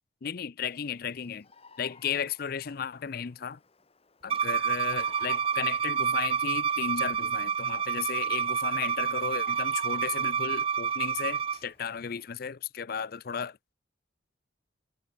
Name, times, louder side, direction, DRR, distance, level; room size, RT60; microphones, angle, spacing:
voice 1, 0.2-1.5 1.8-3.6 4.2-13.7, left 7 dB, 50° left, 0.5 m, -35 dB
Bird vocalization bird call bird song, 0.6-12.4, left 4 dB, 30° left, 2.2 m, -57 dB
Bowed string instrument, 4.3-11.6, right 7 dB, 30° right, 0.4 m, -28 dB
head